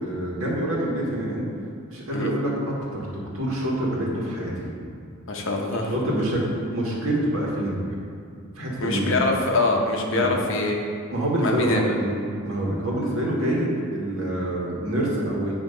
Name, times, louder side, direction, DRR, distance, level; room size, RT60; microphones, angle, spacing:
voice 1, 0.0-1.5 1.9-4.7 5.9-7.8 8.6-9.1 10.1-10.3 11.1-12.2 12.4-15.5, right 1 dB, 90° right, -4 dB, 1.6 m, -26 dB
voice 2, 5.3-5.9 8.8-10.8 11.4-12.0, left 2 dB, 65° left, 1 dB, 0.9 m, -24 dB
8.5 x 2.9 x 5.5 m, 2.4 s
head